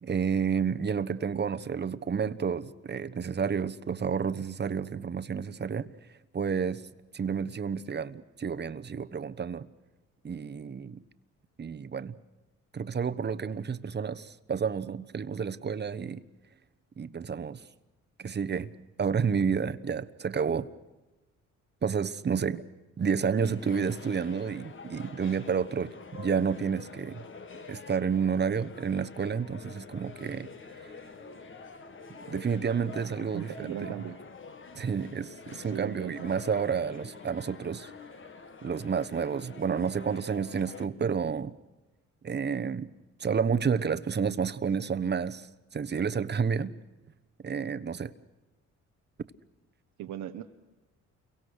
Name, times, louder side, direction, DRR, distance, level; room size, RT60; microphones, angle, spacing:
voice 1, 0.0-5.9 6.3-6.9 7.1-9.7 10.2-11.0 11.6-12.1 12.7-16.2 17.0-17.6 18.2-18.7 19.0-20.7 21.8-22.6 23.0-27.2 27.7-30.5 30.8-30.9 32.3-33.9 34.7-37.9 38.6-41.6 42.2-42.9 43.2-45.5 45.7-46.7 47.4-48.1, right 6 dB, 35° right, 1.1 m, -30 dB
sound 1, 23.4-40.9, left 4 dB, 40° left, 1.7 m, -47 dB
voice 2, 33.2-34.2 35.7-36.3 50.0-50.4, right 11 dB, 85° right, 1.1 m, -38 dB
29.5 x 23.5 x 6.5 m
cardioid pair, 90°, 30 cm